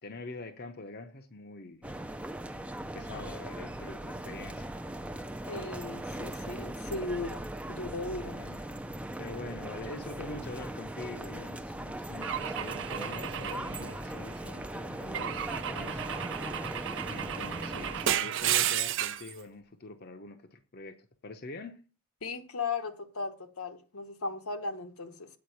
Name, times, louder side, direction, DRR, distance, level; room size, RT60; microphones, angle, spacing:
voice 1, 0.0-2.0 2.5-4.7 8.3-8.7 9.2-16.0 17.0-21.0 21.2-21.8, left 2 dB, 45° left, 0.8 m, -44 dB
sound 1, 1.8-18.2, right 1 dB, 5° right, 0.5 m, -39 dB
voice 2, 5.5-8.4 22.2-25.3, left 3 dB, 80° left, 1.2 m, -37 dB
Car / Engine / Glass, 12.2-14.4 15.1-19.3, right 10 dB, 60° right, 0.6 m, -33 dB
8.6 x 5.1 x 7.8 m
head